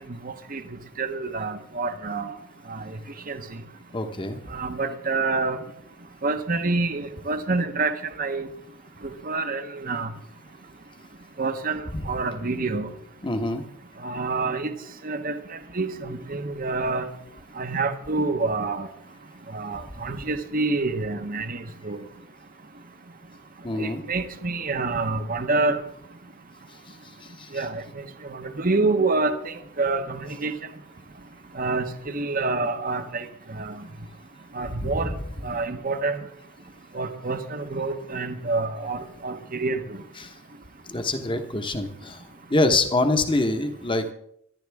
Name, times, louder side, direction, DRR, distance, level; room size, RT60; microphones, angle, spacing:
voice 1, 0.1-0.6 1.0-2.4 2.7-2.9 3.3-3.4 4.5-5.6 6.2-7.9 8.2-8.5 9.2-10.1 11.4-12.9 14.0-14.7 15.0-15.3 15.7-17.1 17.6-18.9 19.5-22.0 23.8-25.8 27.5-30.5 31.5-33.7 34.5-35.1 35.4-36.2 36.9-39.8, right 3 dB, 40° right, 9 dB, 0.9 m, -27 dB
voice 2, 3.9-4.4 11.9-12.0 13.2-13.6 19.8-19.9 23.6-24.0 26.9-27.0 27.2-27.6 34.8-35.1 40.2-40.4 40.9-44.1, left 2 dB, 20° left, 7 dB, 1.1 m, -26 dB
24.0 x 11.5 x 3.5 m, 0.72 s
head